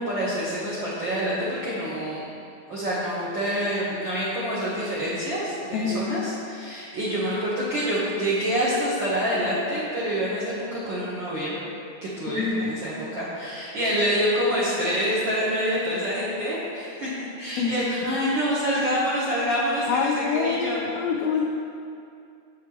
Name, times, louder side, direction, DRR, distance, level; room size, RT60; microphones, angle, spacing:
voice 1, 0.0-2.2 2.7-11.6 12.0-20.8, equal, 70° right, -9 dB, 1.1 m, -27 dB
voice 2, 5.7-6.1 12.3-12.6 17.6-17.9 19.9-21.5, left 5 dB, 85° left, 0 dB, 1.4 m, -26 dB
8.0 x 6.0 x 2.9 m, 2.5 s
omnidirectional pair, 3.4 m